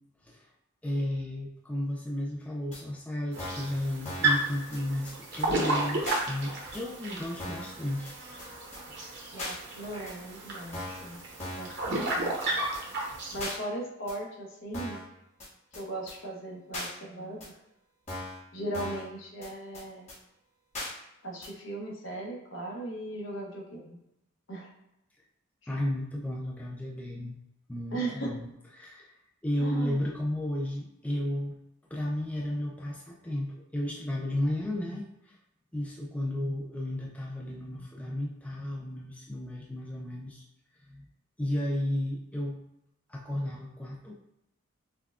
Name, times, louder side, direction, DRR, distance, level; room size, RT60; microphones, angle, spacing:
voice 1, 0.8-8.1 25.7-27.4 27.7-28.5 28.7-29.1 29.4-31.6 31.9-35.4 35.7-40.4 40.9-41.0 41.4-42.6 43.1-44.1, left 1 dB, 5° left, -3 dB, 0.3 m, -33 dB
sound 1, 2.7-2.8 3.4-3.7 4.1-4.4 4.7-4.8 5.1-5.2 5.4-5.5 6.1-6.2 6.7-6.8 7.4-7.7 8.1-8.2 8.4-8.5 8.7-8.8 9.4-9.6 10.1-10.2 10.7-11.1 11.4-11.7 12.1-12.2 12.4-12.5 12.7-12.8 13.4-13.6 14.1-14.2 14.7-15.1 15.4-15.5 15.7-15.8 16.1-16.2 16.7-16.9 17.4-17.5 18.1-18.4 18.7-19.1 19.4-19.5 19.7-19.8 20.1-20.2 20.7-20.9 21.4-21.5, left 1 dB, 35° left, 1.4 m, -38 dB
sound 2, 3.3-13.6, right 2 dB, 55° right, 0.7 m, -33 dB
voice 2, 9.3-11.3 11.6-12.5 13.0-15.0 15.7-17.6 18.5-20.1 21.2-24.0 24.5-24.7 27.9-28.3 29.6-30.0, right 1 dB, 75° left, -2 dB, 1.0 m, -38 dB
5.5 x 2.2 x 2.4 m, 0.87 s
head